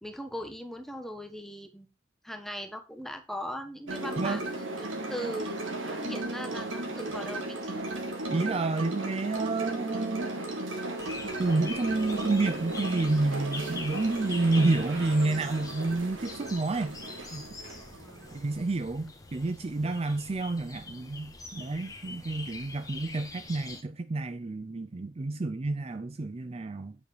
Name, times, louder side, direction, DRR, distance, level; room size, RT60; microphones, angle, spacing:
voice 1, 0.0-1.9 2.2-7.9 17.9-18.3, equal, ahead, 1.3 m, -40 dB
sound 1, 3.9-18.6, right 2 dB, 90° right, 3.0 m, -36 dB
voice 2, 8.3-10.3 11.4-17.5 18.3-27.0, right 3 dB, 30° right, 0.4 m, -29 dB
sound 2, 11.0-23.8, left 3 dB, 20° left, 1.4 m, -44 dB
9.1 x 7.0 x 3.2 m
head